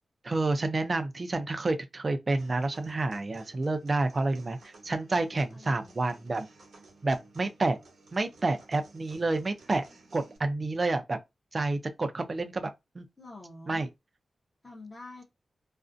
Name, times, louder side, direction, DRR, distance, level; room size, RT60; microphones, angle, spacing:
voice 1, 0.2-6.5 7.0-7.8 8.1-9.8 10.1-11.2 11.5-12.7 13.0-13.1 13.7-13.9, right 2 dB, 30° right, 0.4 m, -29 dB
sound 1, 2.4-10.4, right 3 dB, 75° right, 0.9 m, -55 dB
voice 2, 5.5-6.0 13.2-13.9 14.6-15.2, left 2 dB, 25° left, 0.6 m, -47 dB
2.4 x 2.1 x 2.4 m
wide cardioid pair, 165°, 0 cm